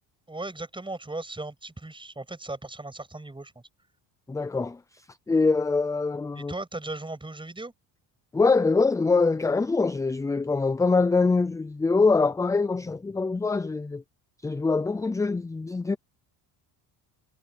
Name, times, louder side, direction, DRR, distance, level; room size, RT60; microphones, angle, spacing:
voice 1, 0.3-3.6 6.3-7.7, right 2 dB, 10° right, 6.7 m, -37 dB
voice 2, 4.3-4.8 5.3-6.5 8.3-14.0 14.4-16.0, left 4 dB, 10° left, 0.4 m, -24 dB
cardioid pair, 120°, 45 cm